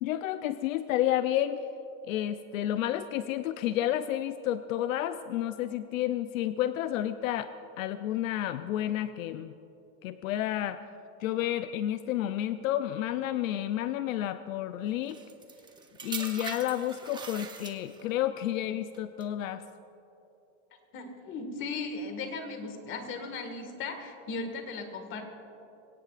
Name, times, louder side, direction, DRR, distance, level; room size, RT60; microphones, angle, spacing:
voice 1, 0.0-1.6 2.1-9.5 10.0-10.8 11.2-15.2 16.0-19.6, left 12 dB, 75° left, 11 dB, 0.7 m, -31 dB
sound 1, 15.1-18.2 18.9-19.2, right 5 dB, 10° right, 0.8 m, -41 dB
voice 2, 20.9-25.2, left 3 dB, 30° left, 5 dB, 1.9 m, -37 dB
23.5 x 17.5 x 2.5 m, 2.9 s
supercardioid pair, 150°, 41 cm